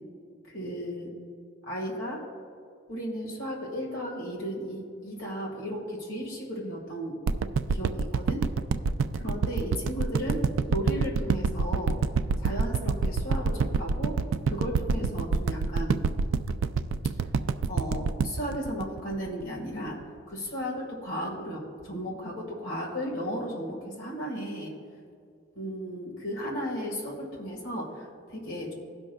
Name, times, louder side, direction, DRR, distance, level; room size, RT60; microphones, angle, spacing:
voice 1, 0.5-1.1 1.7-2.2 2.9-7.2 7.7-8.4 9.1-12.0 12.4-14.2 14.5-16.0 17.7-20.0 20.3-24.7 25.6-28.7, equal, 80° left, -2 dB, 1.7 m, -35 dB
sound 1, 7.3-19.6 20.0-20.1, right 4 dB, 85° right, 0.3 m, -26 dB
18.5 x 6.1 x 2.3 m, 2.3 s
head